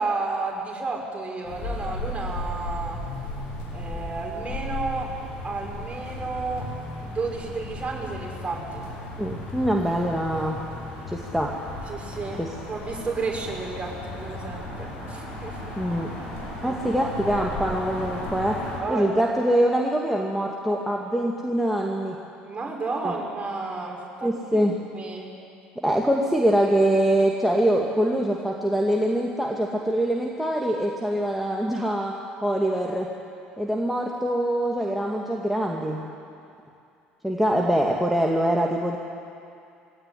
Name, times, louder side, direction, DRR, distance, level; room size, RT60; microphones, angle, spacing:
voice 1, 0.0-3.0 3.7-5.1 5.4-6.7 7.0-8.9 11.9-15.8 16.6-17.5 18.8-19.3 22.4-24.6 24.9-25.3, right 3 dB, 25° right, -1 dB, 5.8 m, -32 dB
sound 1, 1.4-18.8, left 1 dB, 60° left, 6.1 m, -35 dB
voice 2, 9.2-10.6 11.1-11.5 12.4-12.5 15.8-16.1 16.6-18.6 18.9-22.2 23.0-23.1 24.2-24.7 25.8-32.1 32.4-33.1 33.6-36.0 37.2-39.0, right 1 dB, ahead, -2 dB, 2.4 m, -24 dB
21.5 x 17.5 x 10.0 m, 2.5 s
figure-of-eight pair, 60°, 5 cm